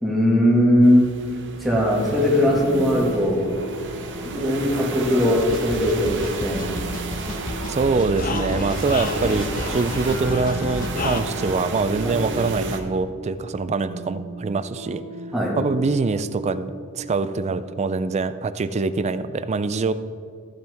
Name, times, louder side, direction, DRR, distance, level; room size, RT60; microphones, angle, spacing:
voice 1, 0.0-1.0 1.6-3.4 4.3-6.6 12.0-12.1 15.3-15.6, left 1 dB, ahead, -5 dB, 2.0 m, -19 dB
sound 1, 0.8-12.8, right 2 dB, 55° right, 1.0 m, -32 dB
sound 2, 2.7-18.3, right 3 dB, 80° right, 1.3 m, -37 dB
sound 3, 5.4-11.2, left 3 dB, 40° left, 0.6 m, -31 dB
voice 2, 7.7-15.0 15.6-19.9, right 4 dB, 30° right, 13 dB, 0.3 m, -24 dB
14.5 x 7.5 x 3.5 m, 2.2 s
head